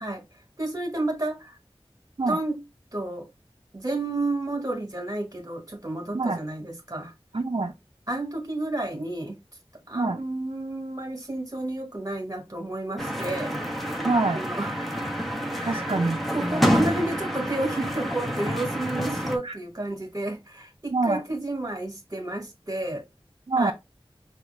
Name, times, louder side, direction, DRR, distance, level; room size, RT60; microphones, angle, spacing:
voice 1, 0.6-1.6 2.2-2.6 2.9-3.3 3.7-7.1 8.1-9.4 9.9-13.8 14.3-14.7 15.5-15.9 16.3-23.0 23.5-23.7, right 2 dB, 35° right, 1.3 m, -31 dB
voice 2, 7.3-7.7 9.9-10.2 14.0-14.4 15.7-16.2 19.4-19.6 20.9-21.2 23.5-23.7, right 3 dB, 60° right, 0.5 m, -25 dB
sound 1, 13.0-19.4, equal, ahead, 0.9 m, -28 dB
5.7 x 2.5 x 3.1 m
wide cardioid pair, 50°, 10 cm